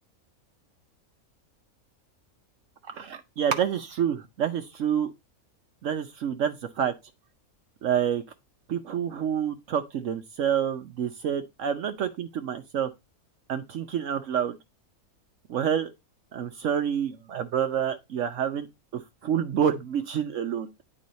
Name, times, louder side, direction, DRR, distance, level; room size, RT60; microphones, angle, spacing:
voice 1, 2.9-5.1 5.8-6.9 7.8-8.2 8.7-12.9 13.5-14.6 15.5-15.9 16.3-18.7 18.9-20.7, right 8 dB, 65° right, 1.0 m, -28 dB
9.2 x 3.9 x 4.1 m
omnidirectional pair, 1.5 m